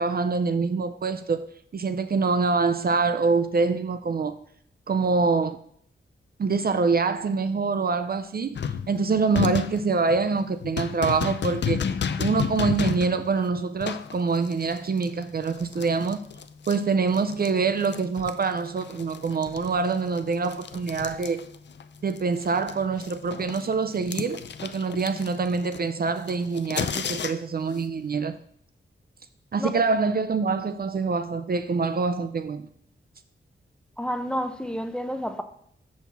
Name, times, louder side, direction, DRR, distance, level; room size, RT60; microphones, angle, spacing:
voice 1, 0.0-1.4 1.7-4.4 4.9-5.6 6.4-8.6 8.9-11.8 12.2-16.3 16.7-21.4 22.0-28.3 29.5-32.7, right 4 dB, 50° right, 0.4 m, -25 dB
sound 1, 8.6-17.5 17.8-21.8 22.1-27.6, left 7 dB, 60° left, 0.5 m, -32 dB
voice 2, 34.0-35.4, equal, 5° left, 0.6 m, -29 dB
7.1 x 6.3 x 3.5 m
wide cardioid pair, 125°, 21 cm